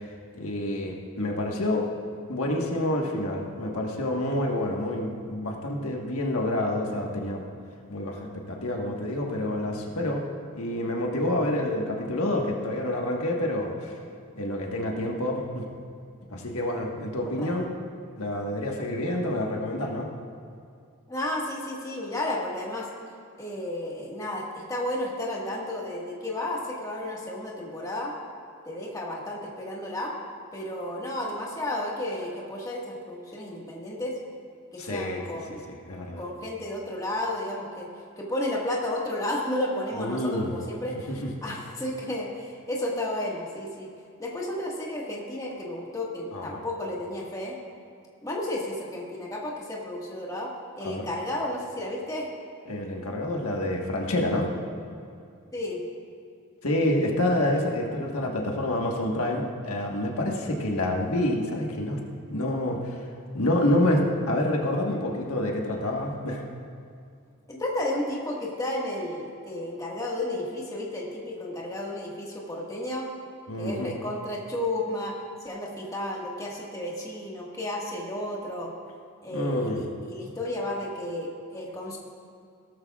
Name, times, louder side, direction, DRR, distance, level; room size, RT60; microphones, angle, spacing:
voice 1, 0.3-1.8 2.3-7.4 7.9-10.2 10.5-14.0 14.3-15.6 16.3-17.7 18.2-20.1 34.8-35.2 35.5-36.2 40.0-40.5 41.1-41.3 46.3-46.6 50.8-51.1 52.7-54.5 56.6-62.0 62.3-63.1 63.3-66.4 73.5-73.9 79.3-79.8, left 1 dB, 80° left, 0 dB, 1.4 m, -28 dB
voice 2, 17.2-17.6 21.1-22.9 23.4-28.1 28.6-30.1 30.5-34.1 34.7-35.6 36.2-37.9 38.2-41.1 41.4-43.9 44.2-47.6 48.2-52.3 55.5-55.8 67.5-73.1 73.6-75.1 75.4-78.7 79.2-82.0, left 1 dB, 15° left, -3 dB, 1.6 m, -32 dB
17.5 x 13.5 x 2.4 m, 2.4 s
head